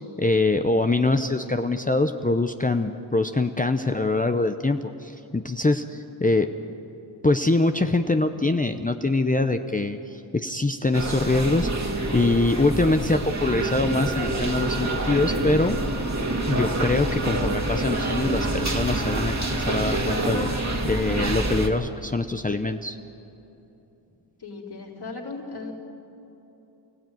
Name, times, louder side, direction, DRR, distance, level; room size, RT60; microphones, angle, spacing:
voice 1, 0.2-6.5 7.2-15.8 16.4-20.5 20.8-23.0, left 2 dB, 20° left, 7 dB, 0.7 m, -24 dB
sound 1, 10.9-21.7, right 2 dB, 35° right, 2.3 m, -26 dB
voice 2, 24.4-25.7, left 3 dB, 55° left, -2 dB, 4.5 m, -36 dB
29.0 x 16.5 x 9.3 m, 3.0 s
wide cardioid pair, 120°, 46 cm